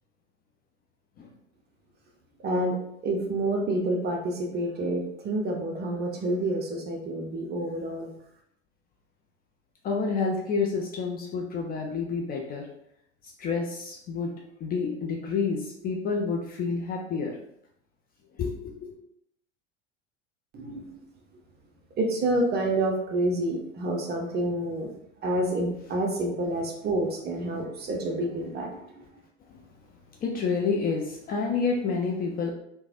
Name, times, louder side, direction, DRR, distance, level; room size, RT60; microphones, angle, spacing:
voice 1, 2.4-8.1 20.5-21.0 22.0-24.9 25.2-29.0, right 1 dB, 30° right, 2 dB, 0.6 m, -28 dB
voice 2, 9.8-12.7 13.4-14.3 14.6-17.4 18.4-18.9 29.5-29.6 30.2-32.5, left 4 dB, 25° left, 0 dB, 0.4 m, -29 dB
3.1 x 2.1 x 2.4 m, 0.74 s
figure-of-eight pair, 75°, 36 cm